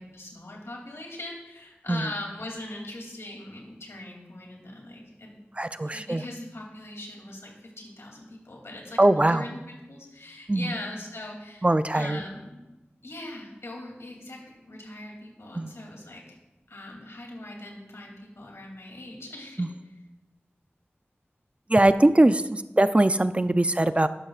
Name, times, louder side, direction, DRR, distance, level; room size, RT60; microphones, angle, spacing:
voice 1, 0.0-5.5 5.9-11.7 11.9-12.6 13.0-16.4 16.7-19.7, left 1 dB, 90° left, -1 dB, 2.8 m, -41 dB
voice 2, 5.6-6.2 9.0-9.5 10.5-10.7 11.6-12.2 15.5-15.7 19.6-19.7 21.7-24.1, right 1 dB, 30° right, 11 dB, 0.5 m, -21 dB
12.5 x 12.0 x 2.5 m, 1.0 s
wide cardioid pair, 50°, 4 cm